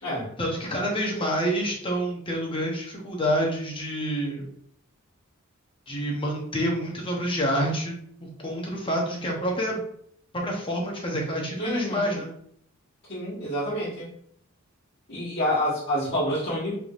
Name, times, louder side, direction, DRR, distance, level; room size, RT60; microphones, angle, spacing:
voice 1, 0.4-4.5 5.9-9.8 10.3-12.3, equal, 25° left, -1 dB, 0.9 m, -28 dB
voice 2, 11.6-12.2 13.1-14.1 15.1-16.8, equal, 50° left, -11 dB, 1.4 m, -28 dB
4.6 x 3.4 x 2.5 m, 0.67 s
head